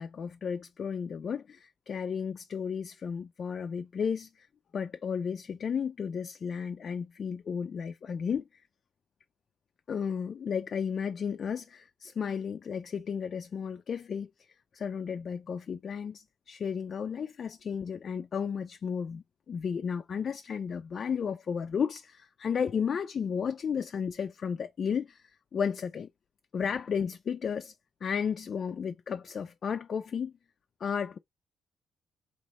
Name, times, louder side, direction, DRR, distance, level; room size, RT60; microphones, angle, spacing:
voice 1, 0.0-4.5 4.7-8.6 9.9-14.3 14.7-26.1 26.5-27.7 28.0-30.3 30.8-31.2, left 7 dB, 50° left, 0.3 m, -33 dB
4.1 x 2.9 x 2.9 m
cardioid pair, 90°, 0 cm